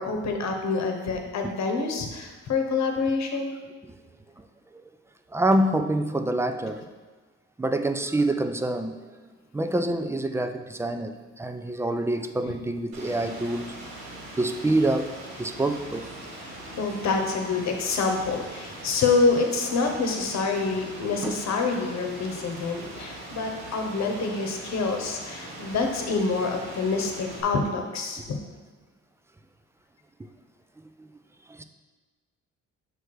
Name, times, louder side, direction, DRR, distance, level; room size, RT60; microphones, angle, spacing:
voice 1, 0.0-3.5 16.8-28.2, left 4 dB, 60° left, 3 dB, 1.0 m, -27 dB
voice 2, 5.3-6.8 7.6-9.1 9.5-13.8 14.4-15.1 15.4-16.1 21.2-21.4 31.0-31.1 31.5-31.6, right 1 dB, 10° right, 8 dB, 0.3 m, -26 dB
Rain, 12.9-27.4, right 1 dB, 75° right, 1.8 m, -41 dB
6.2 x 3.3 x 4.7 m, 1.3 s
cardioid pair, 90°, 30 cm